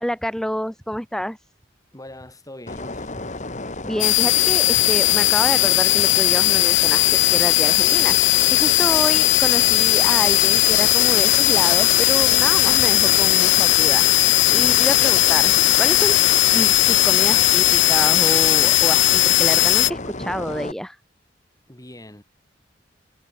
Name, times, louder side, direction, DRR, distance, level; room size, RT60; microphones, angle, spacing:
voice 1, 0.0-1.4 3.8-16.2 16.5-21.0, equal, 5° left, 1.3 m, -28 dB
voice 2, 1.9-3.1 14.5-15.0 21.7-22.2, left 1 dB, 20° left, 5.0 m, -42 dB
sound 1, 2.7-20.7, left 2 dB, 40° left, 3.4 m, -32 dB
sound 2, 4.0-19.9, left 16 dB, 75° left, 0.6 m, -17 dB
head